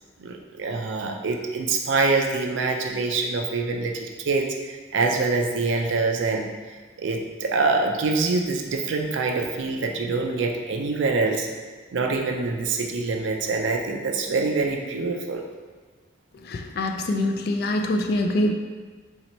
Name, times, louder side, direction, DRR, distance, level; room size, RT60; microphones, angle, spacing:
voice 1, 0.2-6.5 7.0-11.5 11.9-15.4, right 3 dB, 75° right, 2 dB, 0.4 m, -25 dB
voice 2, 16.4-18.5, left 1 dB, 55° left, 4 dB, 0.3 m, -24 dB
4.2 x 2.8 x 3.0 m, 1.5 s
head